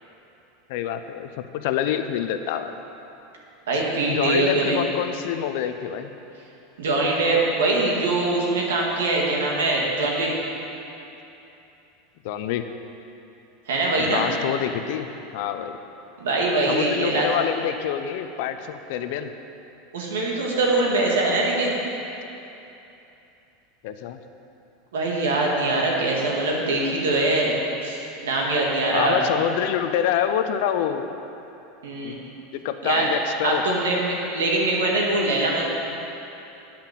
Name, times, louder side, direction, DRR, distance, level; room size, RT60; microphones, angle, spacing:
voice 1, 0.7-2.7 4.1-6.1 12.2-12.6 14.0-15.1 15.3-15.8 16.7-19.3 23.8-24.2 28.9-31.1 32.0-32.2 32.5-33.6, left 10 dB, 65° left, 9 dB, 0.6 m, -26 dB
voice 2, 3.7-4.8 6.8-10.3 13.7-14.2 16.2-17.3 19.9-21.7 24.9-27.6 27.8-29.2 31.8-32.2 32.8-33.0 33.4-35.6, right 2 dB, 90° right, -2 dB, 2.0 m, -23 dB
8.7 x 5.9 x 7.5 m, 2.9 s
supercardioid pair, 120°, 0 cm